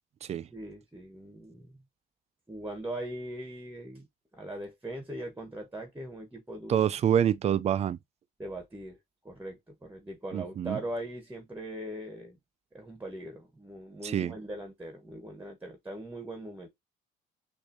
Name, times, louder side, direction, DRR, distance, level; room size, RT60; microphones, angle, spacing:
voice 1, 0.5-1.8 2.5-4.1 4.3-6.8 8.4-9.0 9.2-12.4 12.7-16.7, right 1 dB, 10° right, 1.3 m, -40 dB
voice 2, 6.7-8.0 10.3-10.8 14.0-14.3, right 9 dB, 40° right, 0.4 m, -26 dB
6.5 x 2.8 x 2.8 m
cardioid pair, 110°, 17 cm